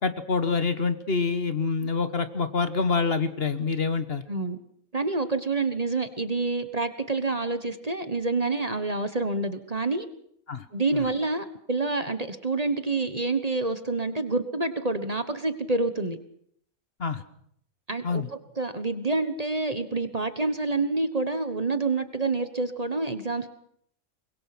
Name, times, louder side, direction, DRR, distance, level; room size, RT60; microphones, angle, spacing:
voice 1, 0.0-4.2 10.5-10.6 10.9-11.0 17.0-17.2 18.0-18.3, left 4 dB, 45° left, 11 dB, 1.3 m, -26 dB
voice 2, 4.3-4.6 4.9-10.1 10.7-16.2 17.9-23.5, right 3 dB, 30° right, 10 dB, 1.3 m, -27 dB
24.5 x 22.0 x 6.1 m, 0.67 s
omnidirectional pair, 1.5 m